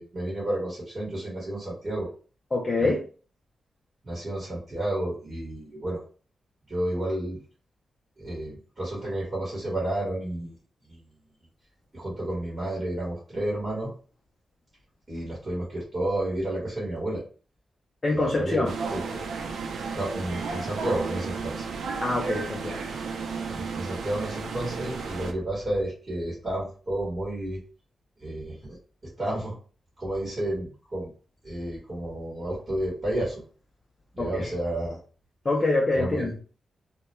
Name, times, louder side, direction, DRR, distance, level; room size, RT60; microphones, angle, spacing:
voice 1, 0.0-2.1 2.8-2.9 4.0-6.0 6.7-7.4 8.2-10.5 10.9-11.0 11.9-13.9 15.1-17.2 18.1-19.0 19.9-21.7 22.6-23.0 23.5-27.6 28.2-28.8 29.2-29.5 30.0-31.1 31.4-33.4 34.1-35.0 35.9-36.4, right 1 dB, 25° right, -6 dB, 1.1 m, -31 dB
voice 2, 2.5-3.0 18.0-18.7 22.0-22.8 34.2-34.5 35.4-36.3, left 2 dB, 25° left, -2 dB, 0.4 m, -25 dB
sound 1, 18.6-25.3, right 5 dB, 85° right, 0.4 m, -33 dB
2.2 x 2.1 x 2.9 m, 0.39 s
wide cardioid pair, 165°, 0 cm